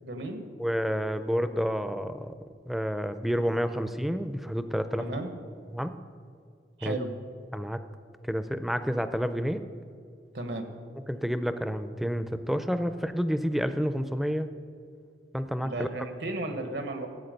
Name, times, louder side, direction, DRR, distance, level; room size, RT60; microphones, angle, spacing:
voice 1, 0.0-0.4 5.0-5.3 6.8-7.1 10.3-10.7 15.6-17.1, right 2 dB, 80° right, 6 dB, 1.4 m, -34 dB
voice 2, 0.6-2.3 2.7-5.1 5.7-6.0 6.8-7.0 7.5-7.8 8.3-9.7 11.1-14.5 15.3-15.9, equal, ahead, 10 dB, 0.4 m, -29 dB
14.5 x 8.3 x 5.3 m, 2.3 s
head